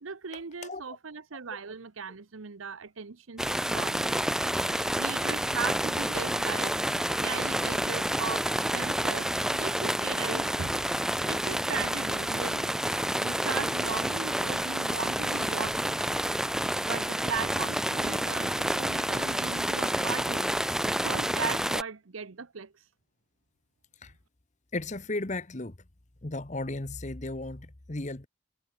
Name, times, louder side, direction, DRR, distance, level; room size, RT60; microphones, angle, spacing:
voice 1, 0.0-3.5 3.7-4.2 5.0-6.8 7.2-10.9 11.2-12.7 13.2-15.9 16.8-20.5 20.8-22.7, right 5 dB, 90° right, 0.9 m, -38 dB
voice 2, 0.6-1.0 14.8-15.0 24.0-24.1 24.7-25.8 26.2-28.3, left 2 dB, 35° left, 1.3 m, -35 dB
sound 1, 3.4-21.8, right 1 dB, 5° right, 0.5 m, -29 dB
head